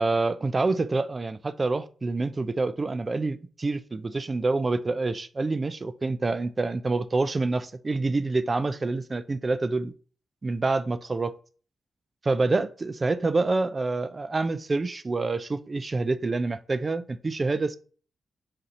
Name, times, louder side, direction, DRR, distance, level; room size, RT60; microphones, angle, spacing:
voice 1, 0.0-9.9 10.4-11.3 12.2-17.8, right 3 dB, 25° right, 0.3 m, -27 dB
4.1 x 4.1 x 2.6 m
wide cardioid pair, 150°, 0 cm